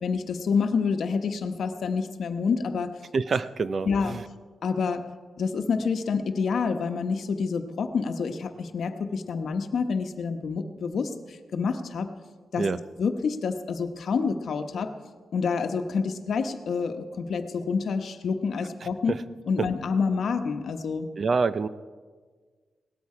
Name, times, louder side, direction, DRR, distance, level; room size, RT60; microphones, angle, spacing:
voice 1, 0.0-3.0 3.9-4.2 4.6-5.1 5.4-11.1 11.5-12.1 12.5-12.7 13.0-14.9 15.3-19.1 19.5-21.1, left 5 dB, 65° left, 7 dB, 1.0 m, -28 dB
voice 2, 3.1-4.2 12.6-12.8 18.8-19.2 19.6-19.7 21.2-21.7, right 4 dB, 45° right, 15 dB, 0.5 m, -27 dB
18.0 x 13.0 x 4.9 m, 1.5 s
wide cardioid pair, 135°, 0 cm